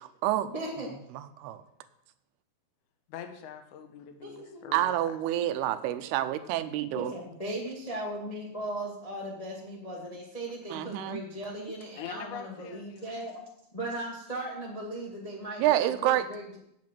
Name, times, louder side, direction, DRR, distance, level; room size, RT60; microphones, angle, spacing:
voice 1, 0.4-0.9 4.2-4.7 6.9-13.4 13.7-16.6, right 1 dB, 55° left, -3 dB, 0.4 m, -38 dB
voice 2, 3.1-5.2 12.0-13.1, left 8 dB, 75° left, 6 dB, 1.8 m, -43 dB
voice 3, 4.7-7.1 10.7-11.2 15.6-16.2, right 13 dB, 80° right, 11 dB, 2.5 m, -27 dB
8.4 x 7.7 x 7.5 m, 0.76 s
omnidirectional pair, 4.8 m